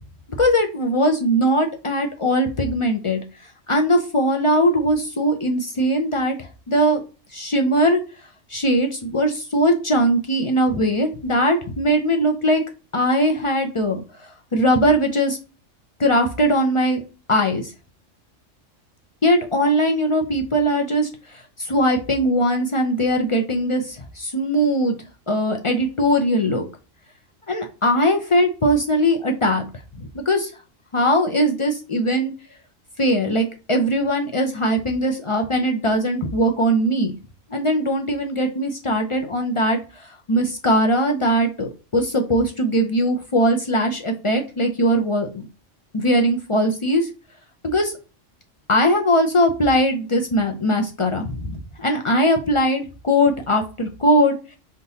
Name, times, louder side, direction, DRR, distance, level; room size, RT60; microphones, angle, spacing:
voice 1, 0.4-3.2 3.7-7.0 7.3-8.0 8.5-12.6 12.9-15.4 16.0-17.0 17.3-17.7 19.2-25.0 25.3-26.7 27.5-29.7 30.0-30.5 30.9-32.3 33.0-37.1 37.5-45.4 45.9-47.1 47.6-48.0 48.7-54.6, equal, 45° left, 4 dB, 0.4 m, -20 dB
4.5 x 3.8 x 2.7 m, 0.32 s
omnidirectional pair, 1.3 m